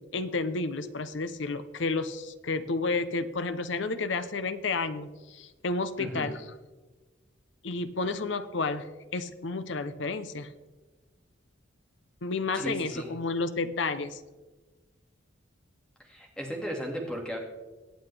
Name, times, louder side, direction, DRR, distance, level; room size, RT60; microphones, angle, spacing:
voice 1, 0.0-6.4 7.6-10.5 12.2-14.2, left 3 dB, 70° left, 12 dB, 0.8 m, -31 dB
voice 2, 6.0-6.3 12.5-13.1 16.0-17.4, equal, 5° left, 0 dB, 2.0 m, -35 dB
23.0 x 8.0 x 3.4 m, 1.2 s
head